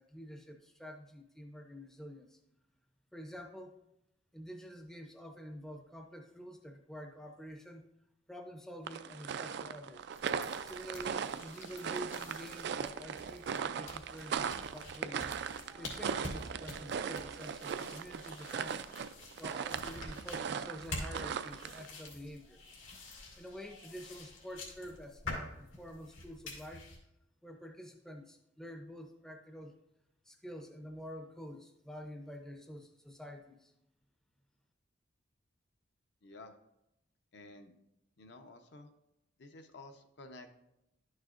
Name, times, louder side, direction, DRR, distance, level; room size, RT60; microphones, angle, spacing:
voice 1, 0.0-2.4 3.1-3.8 4.3-7.8 8.3-10.1 10.6-15.3 15.6-19.1 19.4-22.8 23.4-26.9 27.4-29.8 30.2-33.7, equal, 5° left, 3 dB, 0.5 m, -48 dB
sound 1, 8.9-21.9, right 7 dB, 55° right, 0.3 m, -39 dB
sound 2, 10.1-27.0, left 2 dB, 90° left, 2.1 m, -48 dB
voice 2, 36.2-36.6 37.3-37.7 38.2-38.9 39.4-40.5, left 2 dB, 60° left, 6 dB, 0.6 m, -52 dB
11.5 x 6.4 x 2.5 m, 0.87 s
head